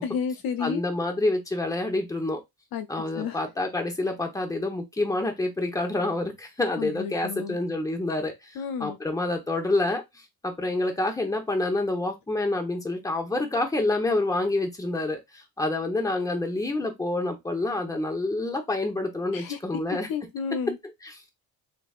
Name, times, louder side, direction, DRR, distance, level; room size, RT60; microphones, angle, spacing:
voice 1, 0.0-0.8 2.7-2.9 3.1-3.4 6.8-7.6 8.6-9.0 19.3-19.6 20.1-20.8, left 6 dB, 60° left, 0.5 m, -31 dB
voice 2, 0.6-2.4 2.9-10.0 10.4-20.1 21.0-21.2, left 2 dB, 10° left, 1.0 m, -28 dB
3.3 x 3.1 x 2.4 m
cardioid pair, 100°, 39 cm